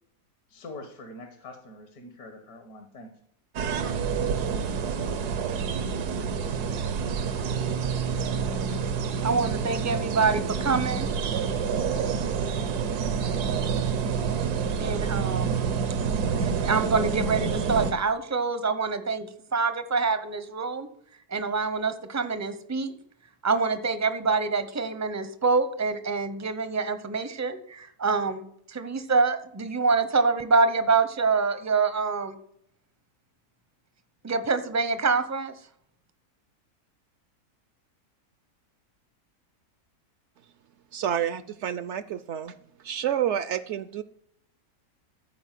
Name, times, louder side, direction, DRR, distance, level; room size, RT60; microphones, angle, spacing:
voice 1, 0.5-3.2, left 2 dB, 75° left, 5 dB, 1.8 m, -44 dB
sound 1, 3.6-17.9, right 6 dB, 85° right, 1.5 m, -28 dB
voice 2, 9.2-11.1 14.8-15.6 16.4-20.9 21.3-22.9 23.4-28.4 28.7-32.4 34.2-35.5, right 4 dB, 20° right, 10 dB, 0.4 m, -26 dB
voice 3, 40.9-42.5 42.8-44.0, right 9 dB, 65° right, 14 dB, 0.7 m, -29 dB
14.0 x 4.8 x 7.5 m, 0.69 s
omnidirectional pair, 1.6 m